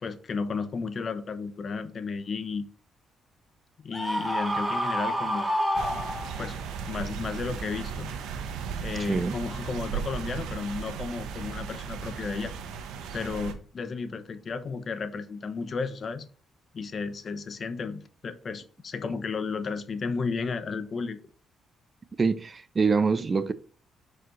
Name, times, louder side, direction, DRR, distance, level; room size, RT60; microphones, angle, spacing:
voice 1, 0.0-2.7 3.8-5.5 6.4-6.6 6.9-8.1 8.8-12.5 13.1-16.3 16.7-21.2, left 4 dB, 45° left, 0.8 m, -33 dB
Screaming, 3.9-6.6, equal, 5° right, 1.6 m, -28 dB
sound 1, 5.7-13.5, right 7 dB, 90° right, 1.0 m, -36 dB
voice 2, 22.2-23.5, right 4 dB, 35° right, 0.5 m, -25 dB
6.1 x 5.0 x 3.9 m
cardioid pair, 90°, 0 cm